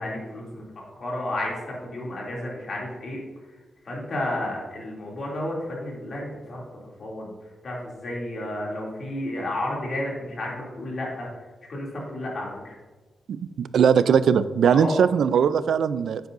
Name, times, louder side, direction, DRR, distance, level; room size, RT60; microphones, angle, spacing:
voice 1, 0.0-3.2 3.8-6.6 7.0-7.3 7.6-11.3 11.7-12.7 14.7-15.0, left 1 dB, 50° left, -3 dB, 2.6 m, -32 dB
voice 2, 13.3-16.3, right 7 dB, 80° right, 14 dB, 0.4 m, -20 dB
10.0 x 8.0 x 2.6 m, 1.2 s
wide cardioid pair, 120°, 0 cm